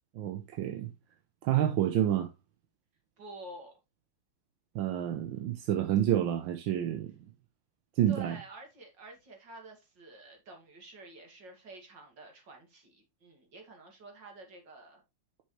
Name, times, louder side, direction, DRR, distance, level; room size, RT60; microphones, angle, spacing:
voice 1, 0.2-0.9 1.4-2.3 4.8-7.1 8.0-8.4, right 11 dB, 85° right, 1.6 m, -28 dB
voice 2, 3.2-3.7 8.1-15.0, right 2 dB, 65° right, 3.1 m, -49 dB
8.6 x 6.7 x 3.2 m
omnidirectional pair, 2.1 m